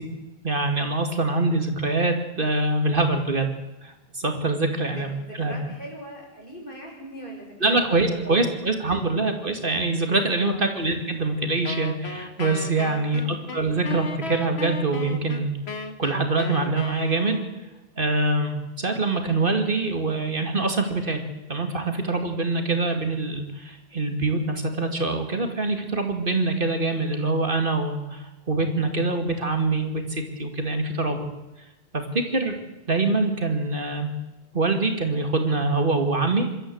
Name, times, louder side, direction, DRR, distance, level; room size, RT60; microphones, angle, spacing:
voice 1, 0.4-3.5 3.8-5.1 5.4-5.5 7.6-15.5 16.0-17.4 18.0-31.3 31.9-32.6 32.9-34.1 34.5-36.5, right 3 dB, 55° right, 5 dB, 2.5 m, -24 dB
voice 2, 4.9-8.6 10.4-10.8 13.0-13.4, equal, 55° left, 0 dB, 6.3 m, -41 dB
Wind instrument woodwind instrument, 11.6-17.7, left 3 dB, 80° left, 1.8 m, -36 dB
26.5 x 13.0 x 7.9 m, 1.0 s
omnidirectional pair, 1.1 m